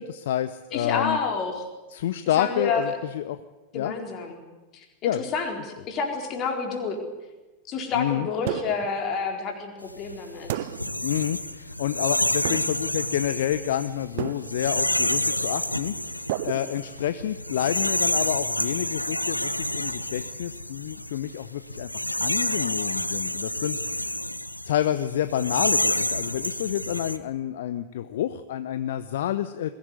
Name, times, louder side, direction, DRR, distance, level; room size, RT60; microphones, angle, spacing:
voice 1, 0.0-1.2 1.9-3.4 3.7-3.9 5.0-5.2 7.9-8.3 11.0-21.9 22.2-24.2 24.7-29.7, left 11 dB, 55° left, 12 dB, 0.8 m, -29 dB
voice 2, 0.7-1.7 2.4-2.9 3.7-4.4 4.7-7.0 7.7-10.7, left 5 dB, 35° left, 3 dB, 4.3 m, -29 dB
sound 1, 8.5-9.0 10.5-11.1 12.4-13.0 14.2-14.8 16.3-17.3, right 14 dB, 50° right, 0.9 m, -33 dB
sound 2, 9.9-27.2, left 1 dB, 85° left, 0.9 m, -29 dB
21.5 x 17.0 x 9.6 m, 1.1 s
figure-of-eight pair, 90°, 0 cm